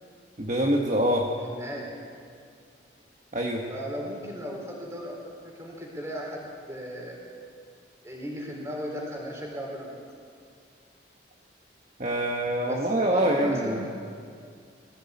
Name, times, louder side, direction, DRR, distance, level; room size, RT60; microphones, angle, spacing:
voice 1, 0.4-1.3 3.3-3.6 12.0-13.8, right 1 dB, 40° right, -1 dB, 1.5 m, -25 dB
voice 2, 1.4-2.0 3.7-7.3 8.0-9.9 12.7-14.1, equal, 15° right, -1 dB, 4.1 m, -36 dB
20.5 x 15.0 x 8.5 m, 2.2 s
head